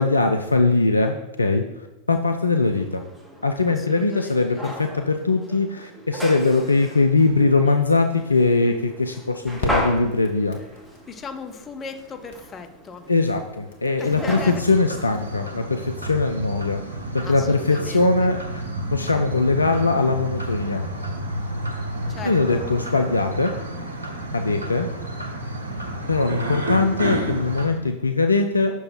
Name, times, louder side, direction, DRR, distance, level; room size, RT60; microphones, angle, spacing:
voice 1, 0.0-3.0 3.4-10.6 13.1-16.8 17.1-18.6 18.9-20.8 22.2-23.5 24.3-24.9 26.1-28.7, left 3 dB, 80° left, 5 dB, 0.3 m, -21 dB
sound 1, 2.6-16.4, equal, 5° right, 1.1 m, -37 dB
voice 2, 3.7-4.7 11.1-13.1 14.0-14.6 17.2-18.3 22.1-22.7, left 5 dB, 25° left, 7 dB, 0.6 m, -37 dB
sound 2, 7.4-15.3, left 1 dB, 60° left, 1.1 m, -39 dB
sound 3, 14.0-27.7, right 1 dB, 75° right, 1.0 m, -31 dB
6.2 x 4.6 x 4.3 m, 0.99 s
figure-of-eight pair, 90°, 0 cm